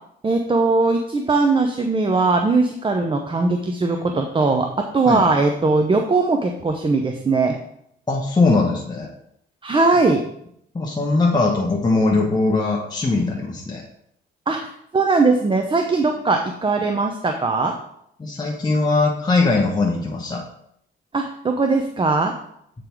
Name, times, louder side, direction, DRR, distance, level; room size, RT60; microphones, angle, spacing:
voice 1, 0.2-7.5 9.6-10.2 14.5-17.7 21.1-22.3, right 3 dB, 25° right, 4 dB, 0.7 m, -20 dB
voice 2, 8.1-9.1 10.7-13.8 18.2-20.4, left 3 dB, 20° left, -2 dB, 1.1 m, -20 dB
8.2 x 3.9 x 4.5 m, 0.72 s
cardioid pair, 90°, 20 cm